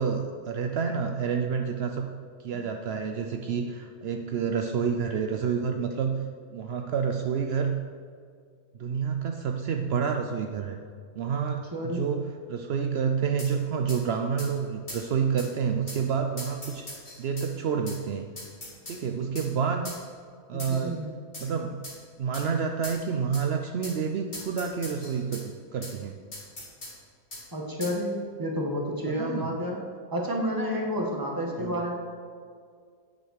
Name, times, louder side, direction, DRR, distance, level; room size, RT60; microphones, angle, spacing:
voice 1, 0.0-2.1 2.4-6.2 6.5-7.8 8.8-10.8 11.2-18.3 18.9-19.9 20.5-21.0 21.4-21.8 22.2-26.2 29.1-29.6 31.6-31.8, right 6 dB, 70° right, 5 dB, 0.6 m, -29 dB
voice 2, 11.7-12.1 20.5-21.1 27.5-29.8 30.1-31.9, equal, 15° right, -1 dB, 1.5 m, -30 dB
sound 1, 13.4-13.5 13.9-14.0 14.4-14.5 14.9-15.0 15.4-15.5 15.9-16.0 16.4-17.5 17.9-18.0 18.4-19.0 19.4-19.5 19.9-20.0 20.6-20.9 21.3-21.5 21.8-22.0 22.3-22.5 22.8-23.0 23.3-23.5 23.8-24.0 24.3-25.4 25.8-25.9 26.3-26.9 27.3-27.4 27.8-28.0, left 1 dB, 35° left, 2.4 m, -40 dB
9.0 x 6.6 x 6.4 m, 2.1 s
omnidirectional pair, 1.7 m